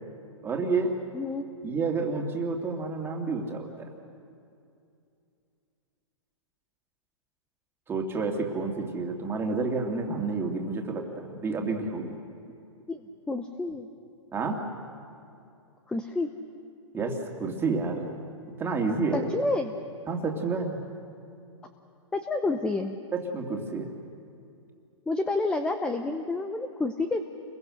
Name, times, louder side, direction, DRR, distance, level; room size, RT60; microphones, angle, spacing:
voice 1, 0.4-0.9 1.6-3.9 7.9-12.2 14.3-14.6 16.9-18.1 18.6-19.3 20.1-20.8 23.1-23.9, right 4 dB, 15° right, 1 dB, 2.7 m, -29 dB
voice 2, 1.1-1.5 12.9-13.9 15.9-16.3 19.1-19.7 22.1-23.0 25.1-27.2, left 2 dB, 5° left, 7 dB, 0.8 m, -29 dB
29.5 x 22.5 x 6.5 m, 2.5 s
hypercardioid pair, 135°, 16 cm